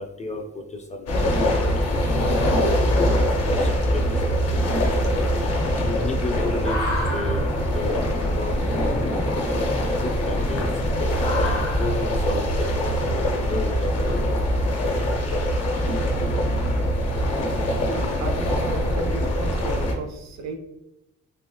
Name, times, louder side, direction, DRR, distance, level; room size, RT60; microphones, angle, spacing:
voice 1, 0.0-5.3 5.9-6.8 7.1-8.0 8.3-9.5 10.0-10.7 11.4-12.7 13.0-14.3, left 2 dB, 25° left, 4 dB, 0.4 m, -33 dB
sound 1, 1.1-19.9, equal, 55° left, 0.8 m, -23 dB
sound 2, 6.6-13.1, left 2 dB, 90° left, 1.4 m, -35 dB
voice 2, 17.8-20.6, right 3 dB, 65° right, 5 dB, 0.6 m, -35 dB
3.5 x 2.8 x 2.2 m, 0.88 s
cardioid pair, 90°, 30 cm